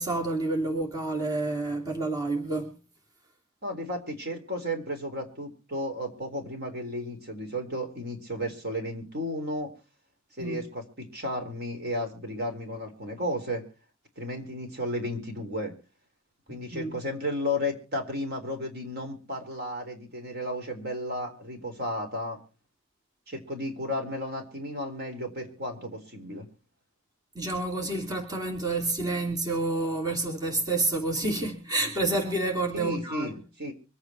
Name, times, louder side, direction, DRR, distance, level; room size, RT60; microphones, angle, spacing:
voice 1, 0.0-2.8 10.4-10.7 16.5-16.9 27.3-33.3, right 2 dB, 20° right, 2.9 m, -29 dB
voice 2, 3.6-9.7 10.4-13.7 14.2-15.7 16.5-22.4 23.3-26.5 32.7-33.7, left 1 dB, 50° right, 3.8 m, -33 dB
24.5 x 9.0 x 4.4 m
head